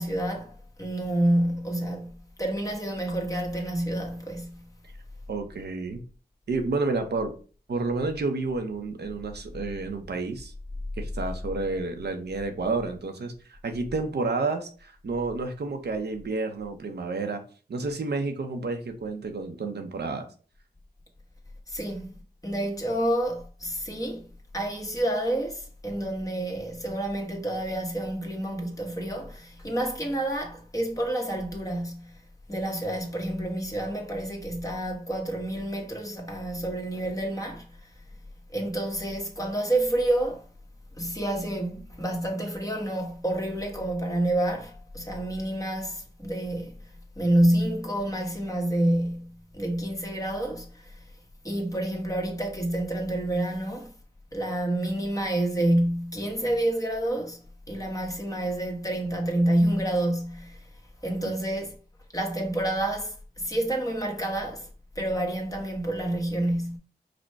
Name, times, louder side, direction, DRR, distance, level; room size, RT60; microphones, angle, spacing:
voice 1, 0.0-4.6 21.7-22.2 22.4-24.2 24.5-32.1 32.5-37.7 38.5-40.4 41.0-46.7 47.2-50.9 51.4-53.9 54.3-57.4 57.7-60.6 61.0-61.7 62.1-64.7 65.0-66.8, right 1 dB, 20° left, 1.1 m, -28 dB
voice 2, 5.3-6.0 6.5-7.3 7.7-10.5 11.0-17.4 17.7-20.3, right 3 dB, 80° right, 0.7 m, -30 dB
5.0 x 2.1 x 4.5 m
wide cardioid pair, 80°, 17 cm